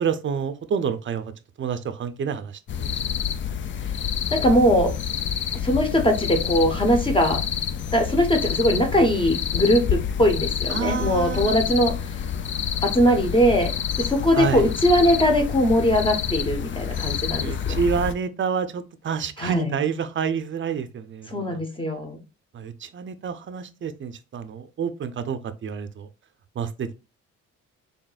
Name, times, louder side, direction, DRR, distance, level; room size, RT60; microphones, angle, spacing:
voice 1, 0.0-1.3 1.6-2.9 10.7-11.6 14.3-14.7 17.0-21.6 22.5-26.1 26.6-26.9, right 7 dB, 40° right, 0.6 m, -28 dB
sound 1, 2.7-18.1, left 8 dB, 40° left, 0.4 m, -28 dB
voice 2, 4.3-4.9 5.5-7.4 7.9-12.0 12.8-17.8 19.4-19.8 21.3-22.2, equal, 15° left, 1.1 m, -21 dB
3.9 x 3.5 x 2.4 m
cardioid pair, 90°, 30 cm